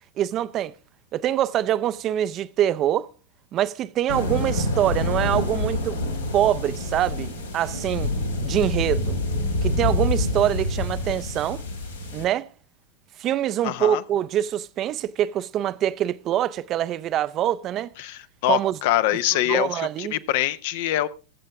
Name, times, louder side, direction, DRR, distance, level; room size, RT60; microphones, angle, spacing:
voice 1, 0.2-0.7 1.1-3.1 3.5-6.0 6.3-8.1 8.4-9.2 9.6-11.6 12.1-12.5 13.2-17.9 18.5-18.8 19.5-20.1, right 11 dB, 30° right, 0.6 m, -24 dB
sound 1, 4.1-12.2, left 2 dB, 75° left, 2.6 m, -26 dB
voice 2, 13.6-14.0 18.0-21.1, left 14 dB, 50° left, 0.8 m, -24 dB
22.5 x 7.7 x 3.5 m
figure-of-eight pair, 90°, 0 cm